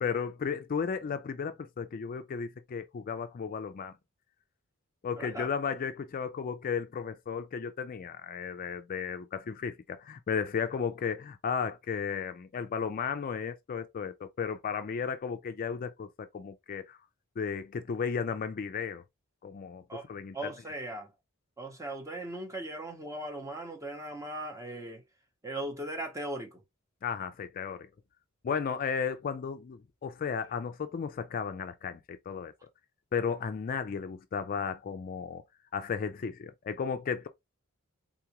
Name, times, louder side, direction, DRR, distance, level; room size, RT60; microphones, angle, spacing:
voice 1, 0.0-4.0 5.0-17.0 17.4-19.0 19.4-20.5 27.0-27.9 28.4-32.5 33.1-35.4 35.7-37.3, left 6 dB, 40° left, 0.3 m, -34 dB
voice 2, 5.2-5.5 19.9-20.1 20.3-21.1 21.6-25.0 25.4-26.6, right 1 dB, 15° right, 0.8 m, -38 dB
3.8 x 2.4 x 2.8 m
head